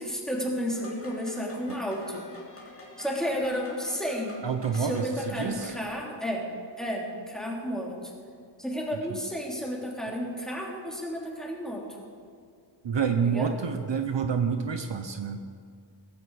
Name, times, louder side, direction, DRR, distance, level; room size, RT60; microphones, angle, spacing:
voice 1, 0.0-2.2 3.0-4.4 4.7-6.5 6.8-8.1 8.6-11.8 13.2-13.5, equal, ahead, -2 dB, 3.2 m, -32 dB
sound 1, 0.7-5.8, left 1 dB, 30° left, 3.1 m, -46 dB
voice 2, 4.4-5.7 9.1-9.2 12.8-15.4, right 6 dB, 60° right, 7 dB, 1.0 m, -28 dB
16.5 x 15.0 x 4.8 m, 2.2 s
wide cardioid pair, 95°, 48 cm